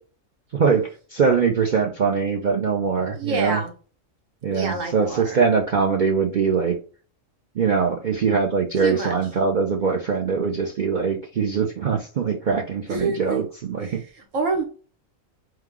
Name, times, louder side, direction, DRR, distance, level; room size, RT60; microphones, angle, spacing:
voice 1, 0.5-3.6 4.4-6.8 7.6-14.0, right 5 dB, 55° right, 0 dB, 0.6 m, -22 dB
voice 2, 3.1-3.7 4.5-5.5 8.8-9.2 12.9-13.4 13.8-14.6, right 4 dB, 70° right, 3 dB, 1.4 m, -27 dB
4.7 x 2.3 x 3.5 m, 0.38 s
omnidirectional pair, 1.4 m